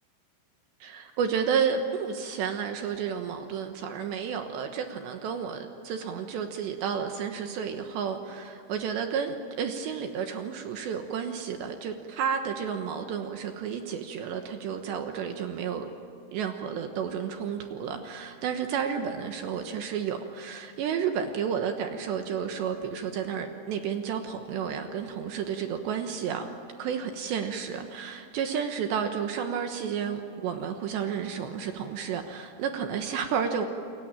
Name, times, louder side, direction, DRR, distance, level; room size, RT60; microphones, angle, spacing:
voice 1, 0.8-15.9 16.3-33.7, right 7 dB, 70° right, 6 dB, 3.0 m, -31 dB
29.0 x 23.0 x 8.9 m, 2.5 s
omnidirectional pair, 6.0 m